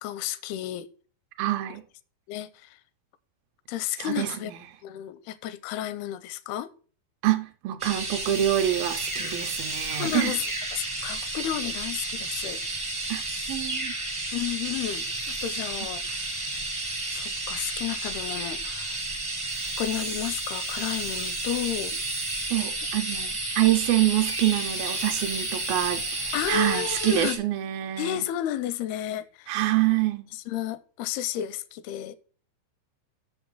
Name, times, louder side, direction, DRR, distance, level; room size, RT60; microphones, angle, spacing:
voice 1, 0.0-0.9 2.3-2.8 3.7-4.5 4.8-6.7 9.2-9.4 9.9-10.4 10.7-12.6 14.3-16.4 17.1-19.0 19.8-22.0 26.3-27.4 28.0-29.6 30.3-32.2, left 11 dB, 85° left, 2.5 m, -32 dB
voice 2, 1.4-1.8 4.0-4.3 7.2-10.3 13.1-13.2 13.5-13.9 22.5-28.2 29.5-30.3, right 14 dB, 80° right, 2.3 m, -26 dB
sound 1, 7.8-27.4, right 2 dB, 45° right, 0.4 m, -32 dB
6.6 x 6.3 x 5.9 m
omnidirectional pair, 4.5 m